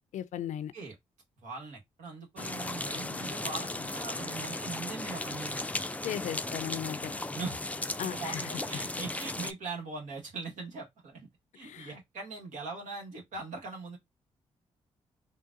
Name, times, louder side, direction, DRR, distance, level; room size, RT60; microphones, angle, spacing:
voice 1, 0.1-0.7 6.0-7.2 8.0-8.5 11.6-11.9, left 10 dB, 75° left, 0.4 m, -37 dB
voice 2, 1.4-5.8 7.3-7.6 8.0-11.3 11.5-14.0, right 4 dB, 85° right, 1.3 m, -41 dB
sound 1, 2.4-9.5, left 2 dB, 10° left, 0.4 m, -36 dB
3.9 x 2.3 x 2.5 m
supercardioid pair, 55°, 13 cm